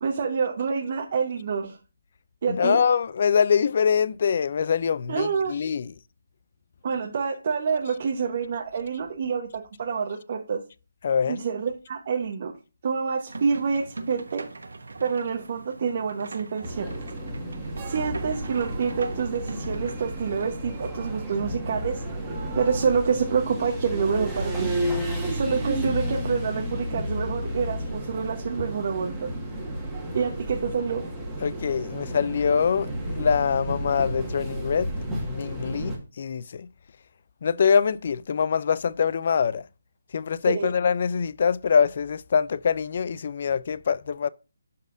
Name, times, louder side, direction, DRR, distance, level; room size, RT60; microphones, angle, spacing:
voice 1, 0.0-1.8 2.4-2.8 5.1-5.5 6.8-10.6 11.3-12.5 12.8-14.4 15.0-16.9 17.8-22.0 22.5-24.7 25.3-29.3 30.1-31.0 40.5-40.7, right 6 dB, 40° right, 1.0 m, -27 dB
voice 2, 2.5-5.9 11.0-11.4 31.4-34.9 35.2-36.7 37.4-39.6 40.1-44.3, left 6 dB, 45° left, 0.4 m, -24 dB
sound 1, 13.3-20.9, right 3 dB, 85° right, 1.2 m, -41 dB
sound 2, 16.6-36.0, equal, 5° right, 1.6 m, -32 dB
sound 3, 17.8-23.5, right 4 dB, 25° right, 1.4 m, -45 dB
11.5 x 4.1 x 2.5 m
hypercardioid pair, 165°, 0 cm